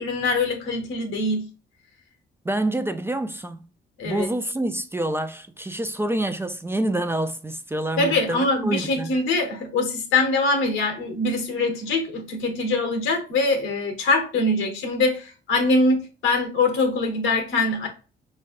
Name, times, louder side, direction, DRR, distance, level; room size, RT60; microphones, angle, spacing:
voice 1, 0.0-1.5 4.0-4.3 8.0-17.9, left 2 dB, 85° left, 1.1 m, -23 dB
voice 2, 2.4-3.7 4.0-9.2, right 1 dB, 10° right, 0.3 m, -27 dB
4.6 x 3.2 x 2.4 m
cardioid pair, 90°, 20 cm